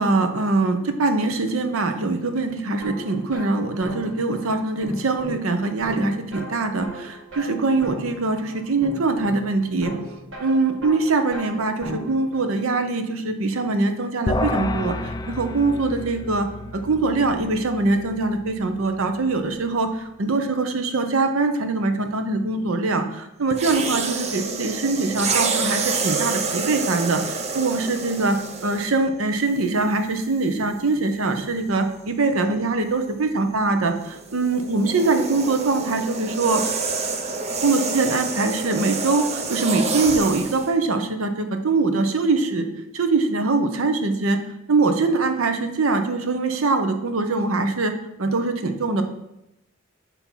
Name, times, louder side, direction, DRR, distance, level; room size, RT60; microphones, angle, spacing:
voice 1, 0.0-9.9 10.4-16.5 16.7-28.4 28.6-36.6 37.6-42.7 42.9-44.4 44.7-47.9 48.2-49.0, right 3 dB, 85° right, 7 dB, 0.8 m, -23 dB
sound 1, 2.6-12.5, equal, 65° right, 1.5 m, -37 dB
sound 2, 14.3-19.8, left 2 dB, 20° left, 0.3 m, -31 dB
sound 3, 23.5-29.0 29.8-30.1 34.0-40.7, right 4 dB, 30° right, 0.6 m, -28 dB
8.2 x 2.8 x 5.5 m, 0.86 s
head